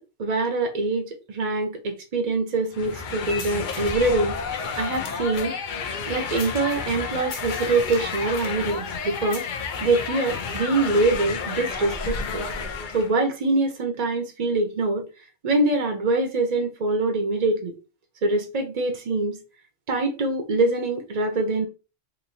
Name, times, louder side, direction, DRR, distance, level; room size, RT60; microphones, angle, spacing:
voice 1, 0.2-4.4 4.8-5.6 6.1-9.5 9.8-12.4 12.9-15.0 15.4-17.7 18.2-19.4 19.9-21.7, right 2 dB, 45° right, 0.6 m, -24 dB
sound 1, 2.7-13.1, left 5 dB, 60° left, 0.6 m, -31 dB
3.1 x 2.6 x 2.5 m
omnidirectional pair, 1.1 m